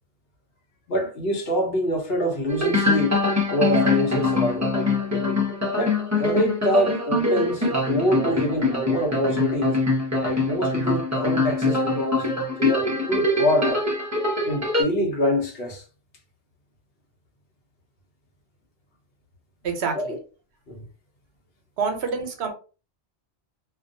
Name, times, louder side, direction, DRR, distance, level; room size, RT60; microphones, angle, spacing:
voice 1, 0.9-3.2 3.5-4.8 5.7-9.8 10.2-12.3 12.6-13.8 14.4-15.8 19.9-20.2 20.7-20.8, equal, 60° left, 0.9 m, -25 dB
sound 1, 2.5-14.8, left 2 dB, 20° right, 0.6 m, -23 dB
voice 2, 19.6-20.2 21.8-22.5, right 5 dB, 70° right, 0.9 m, -27 dB
2.3 x 2.2 x 2.6 m
omnidirectional pair, 1.2 m